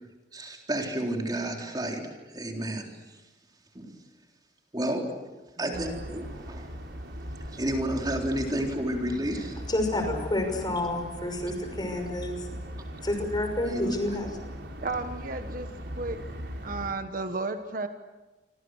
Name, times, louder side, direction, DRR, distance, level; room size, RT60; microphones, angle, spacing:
voice 1, 0.3-3.2 3.7-4.0 4.7-5.3 5.6-6.7 7.5-9.6 9.9-10.0 10.6-10.7 13.7-14.0, right 1 dB, 25° right, 1 dB, 3.9 m, -31 dB
voice 2, 5.7-6.0 10.0-10.1 14.8-16.2 16.6-17.9, right 3 dB, 50° right, 7 dB, 1.5 m, -33 dB
sound 1, 5.7-16.9, equal, 80° right, 4.3 m, -39 dB
voice 3, 9.7-12.5 13.0-14.3, left 1 dB, 25° left, 5 dB, 5.8 m, -29 dB
29.0 x 25.5 x 6.6 m, 1.2 s
head